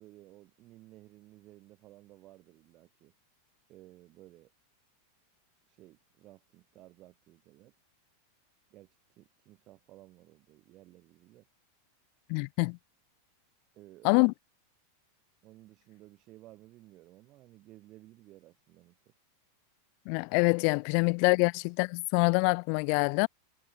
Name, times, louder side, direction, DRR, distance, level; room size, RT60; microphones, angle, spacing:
voice 1, 0.0-3.1 3.7-4.5 5.7-7.8 8.7-11.5 13.7-14.3 15.4-19.2, right 17 dB, 40° right, 3.9 m, -56 dB
voice 2, 12.3-12.8 14.0-14.3 20.1-23.3, left 40 dB or more, 55° left, 0.7 m, -25 dB
hypercardioid pair, 120°, 0 cm